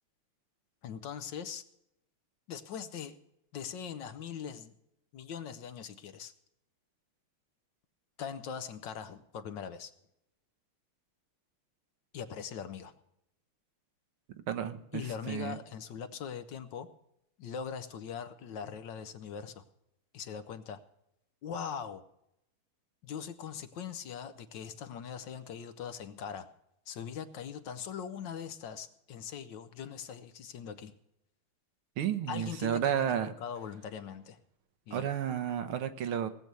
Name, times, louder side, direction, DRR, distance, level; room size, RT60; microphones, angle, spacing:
voice 1, 0.8-1.6 2.5-3.2 3.5-4.7 5.1-6.3 8.2-9.9 12.1-12.9 14.9-16.9 17.4-19.6 20.1-20.8 21.4-22.0 23.0-26.5 26.9-30.9 32.3-34.4 34.9-35.1, left 7 dB, 65° left, 10 dB, 1.3 m, -41 dB
voice 2, 14.5-15.6 32.0-33.3 34.9-36.3, right 9 dB, 80° right, 10 dB, 1.8 m, -32 dB
18.5 x 7.7 x 6.7 m, 0.82 s
omnidirectional pair, 2.4 m